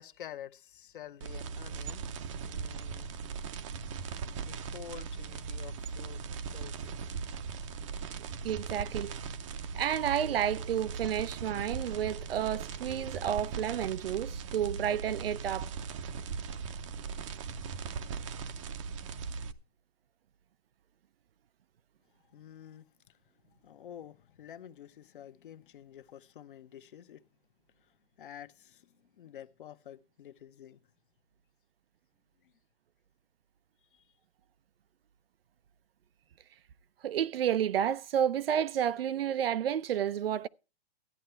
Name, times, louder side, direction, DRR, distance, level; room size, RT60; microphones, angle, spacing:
voice 1, 0.0-2.0 2.5-3.1 4.4-7.1 22.3-23.2 23.6-27.2 27.8-27.9 28.2-30.8 32.4-32.5 33.9-34.1, left 10 dB, 55° left, 1.1 m, -49 dB
sound 1, 1.2-19.5, right 5 dB, 30° right, 0.7 m, -39 dB
voice 2, 8.4-9.2 9.7-15.7 37.0-40.5, right 9 dB, 65° right, 0.6 m, -31 dB
13.5 x 9.9 x 4.5 m
hypercardioid pair, 165°, 32 cm